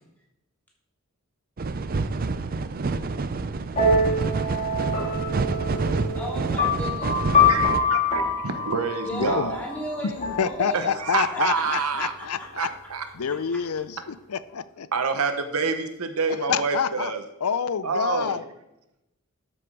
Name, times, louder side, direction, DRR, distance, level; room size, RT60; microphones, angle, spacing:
sound 1, 1.6-7.8, right 3 dB, 40° right, 0.5 m, -28 dB
sound 2, 3.7-11.3, left 3 dB, 35° left, 2.3 m, -25 dB
voice 1, 6.1-7.2 9.0-11.0 11.3-12.5 13.2-13.6, equal, 10° left, -4 dB, 2.8 m, -36 dB
voice 2, 7.5-9.7 10.7-12.1 12.6-13.1 14.9-17.2 17.8-18.4, right 4 dB, 85° right, 8 dB, 1.0 m, -27 dB
voice 3, 9.1-9.5 10.0-12.7 13.1-14.9 16.5-17.1 17.4-18.4, left 6 dB, 90° left, 15 dB, 0.5 m, -27 dB
12.0 x 6.3 x 4.7 m, 0.89 s
head